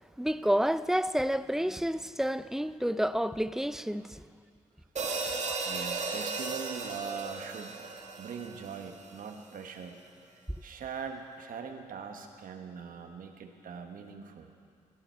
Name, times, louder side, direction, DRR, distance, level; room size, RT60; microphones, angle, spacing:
voice 1, 0.2-4.2, equal, 5° right, 0.4 m, -29 dB
sound 1, 5.0-9.3, right 4 dB, 55° right, 1.6 m, -36 dB
voice 2, 5.1-7.9 8.2-10.0 10.3-14.6, right 6 dB, 75° right, 1.2 m, -42 dB
16.0 x 12.0 x 4.5 m
cardioid pair, 65°, 14 cm